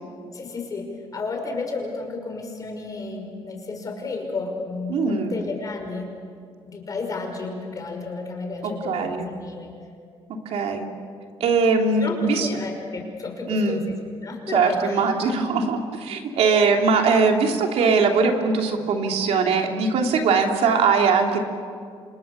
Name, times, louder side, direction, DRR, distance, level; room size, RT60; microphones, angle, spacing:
voice 1, 0.3-6.1 6.6-9.7 12.0-13.9 14.2-15.1, left 3 dB, 35° left, 2 dB, 5.8 m, -32 dB
voice 2, 4.9-5.4 8.8-9.3 10.4-10.9 11.4-12.5 13.5-13.8 14.5-21.4, right 4 dB, 85° right, 2 dB, 3.1 m, -21 dB
30.0 x 26.5 x 6.9 m, 2.2 s
cardioid pair, 150°, 10 cm